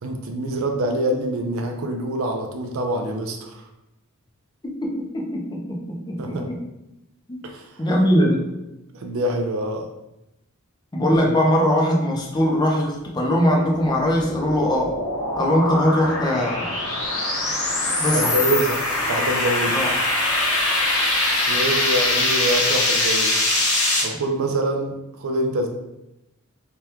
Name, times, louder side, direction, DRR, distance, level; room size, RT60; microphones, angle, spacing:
voice 1, 0.0-3.7 6.2-6.5 7.4-7.9 8.9-9.9 18.1-18.8 19.1-19.8 21.5-23.4 24.0-25.7, right 1 dB, 70° right, 3 dB, 0.4 m, -25 dB
voice 2, 4.6-6.6 7.3-7.4 7.8-8.5 10.9-14.9 15.4-16.7 18.0-18.3 19.7-19.9, equal, 20° left, -1 dB, 0.5 m, -21 dB
sound 1, 13.7-24.0, left 2 dB, 80° left, 1.0 m, -23 dB
2.9 x 2.2 x 3.4 m, 0.92 s
head